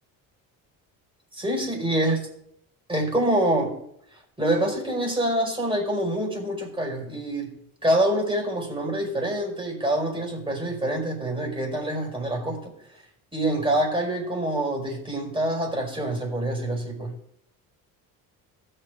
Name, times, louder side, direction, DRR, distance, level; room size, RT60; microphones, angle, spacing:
voice 1, 1.3-2.2 2.9-3.8 4.4-7.5 7.8-12.7 13.3-17.1, right 1 dB, 15° right, 0 dB, 5.0 m, -26 dB
16.0 x 6.9 x 3.7 m, 0.72 s
supercardioid pair, 65°, 40 cm